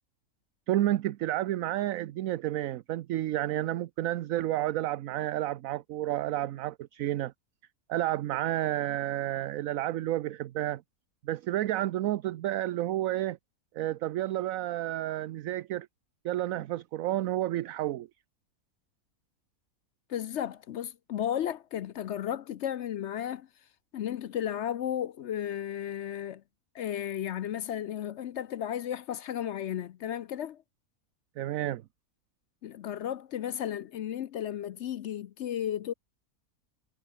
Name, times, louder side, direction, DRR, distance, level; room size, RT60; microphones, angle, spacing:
voice 1, 0.7-7.3 7.9-10.8 11.2-13.4 13.7-15.9 16.2-18.1 31.4-31.8, right 14 dB, 70° right, 1.0 m, -30 dB
voice 2, 20.1-23.5 23.9-26.4 26.7-30.6 32.6-35.9, left 10 dB, 65° left, 0.8 m, -34 dB
omnidirectional pair, 1.6 m